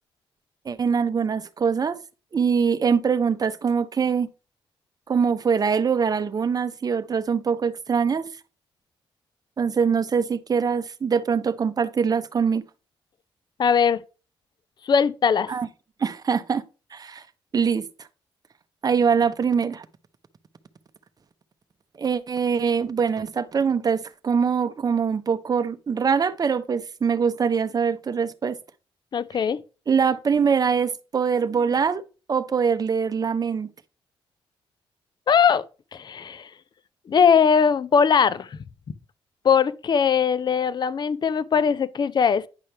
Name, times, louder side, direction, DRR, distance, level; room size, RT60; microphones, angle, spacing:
voice 1, 0.6-2.0 2.3-4.3 5.1-8.3 9.6-12.6 15.5-15.7 16.0-16.6 16.9-17.2 17.5-17.9 18.8-19.9 22.0-28.6 29.9-32.0 32.3-33.7, right 6 dB, 40° right, 0.8 m, -23 dB
voice 2, 13.6-14.0 14.8-15.5 29.1-29.6 35.3-35.7 35.9-36.5 37.1-38.6 39.4-42.5, left 6 dB, 45° left, 0.5 m, -20 dB
9.9 x 5.6 x 3.4 m
cardioid pair, 75°, 10 cm